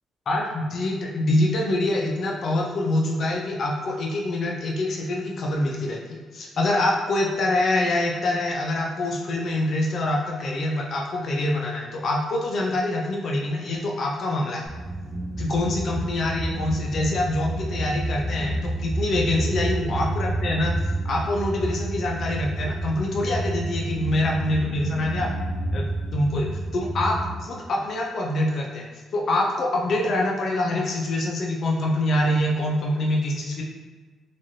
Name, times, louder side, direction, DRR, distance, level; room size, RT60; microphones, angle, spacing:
voice 1, 0.3-14.7 15.4-20.8 21.1-25.3 25.7-26.5 26.7-28.9 29.1-33.6, left 1 dB, 60° left, -1 dB, 0.4 m, -25 dB
sound 1, 14.7-27.3, right 2 dB, 20° right, 0.7 m, -29 dB
3.0 x 2.4 x 2.6 m, 1.4 s
cardioid pair, 90°, 0 cm